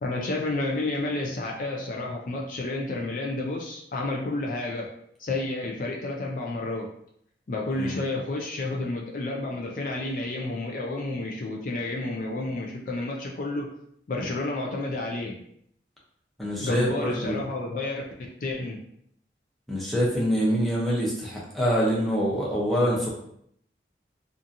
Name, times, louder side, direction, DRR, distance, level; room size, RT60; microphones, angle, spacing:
voice 1, 0.0-4.9 5.2-6.9 7.5-13.7 14.1-15.3 16.6-18.0 18.4-18.8, left 2 dB, 45° left, -1 dB, 0.4 m, -30 dB
voice 2, 16.4-17.4 19.7-23.1, equal, ahead, -6 dB, 0.6 m, -25 dB
2.7 x 2.5 x 2.5 m, 0.70 s
head